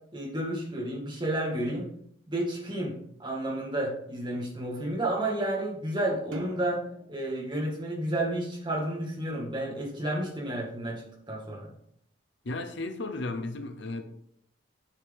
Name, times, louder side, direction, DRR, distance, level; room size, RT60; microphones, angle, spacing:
voice 1, 0.1-1.9 2.3-6.8 7.1-11.7, right 1 dB, 25° right, 1.9 m, -31 dB
sound 1, 6.3-8.9, equal, 85° right, 1.0 m, -46 dB
voice 2, 12.4-14.0, left 2 dB, 60° left, 0.8 m, -34 dB
8.8 x 6.4 x 3.6 m
head